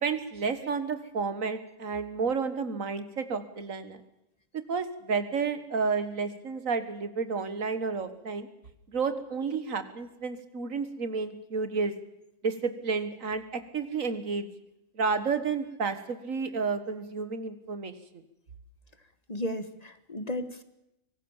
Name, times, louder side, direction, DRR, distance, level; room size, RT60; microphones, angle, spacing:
voice 1, 0.0-4.0 4.7-8.5 8.9-11.9 12.4-14.5 15.0-18.2, right 5 dB, 85° right, 10 dB, 2.0 m, -31 dB
voice 2, 19.3-20.6, left 1 dB, 30° left, 11 dB, 1.5 m, -34 dB
24.5 x 18.5 x 7.3 m, 0.87 s
omnidirectional pair, 1.4 m